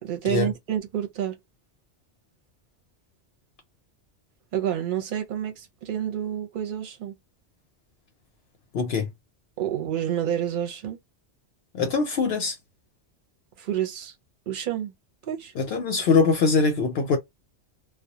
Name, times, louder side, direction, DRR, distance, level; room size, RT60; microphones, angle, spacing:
voice 1, 0.0-1.4 4.5-7.1 9.6-11.0 13.6-14.1 14.5-14.9 15.2-15.5, right 10 dB, 55° right, 0.7 m, -29 dB
voice 2, 8.7-9.1 11.7-12.6 15.6-17.2, left 4 dB, 65° left, 0.8 m, -22 dB
2.3 x 2.0 x 2.7 m
omnidirectional pair, 1.2 m